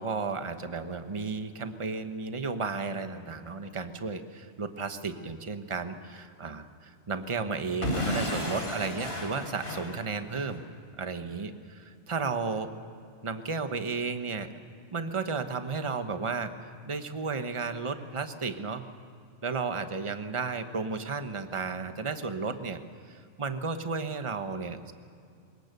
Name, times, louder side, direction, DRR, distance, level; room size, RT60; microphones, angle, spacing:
voice 1, 0.0-10.7 11.0-12.7 13.2-14.5 14.9-16.5 16.9-18.8 19.4-22.8 23.1-24.9, right 4 dB, 30° right, 8 dB, 1.1 m, -33 dB
Explosion / Shatter, 7.8-10.6, left 1 dB, 60° left, 3.5 m, -33 dB
24.5 x 21.0 x 6.8 m, 2.5 s
omnidirectional pair, 1.1 m